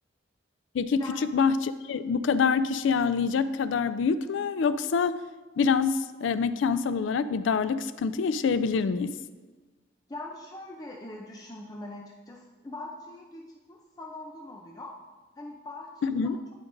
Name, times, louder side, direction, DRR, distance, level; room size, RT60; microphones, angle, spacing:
voice 1, 0.7-5.2 5.6-9.2 16.0-16.4, left 5 dB, 75° left, 12 dB, 0.3 m, -26 dB
voice 2, 10.1-14.9 15.4-16.3, left 2 dB, 20° left, 0 dB, 0.5 m, -42 dB
11.5 x 5.1 x 2.6 m, 1.3 s
head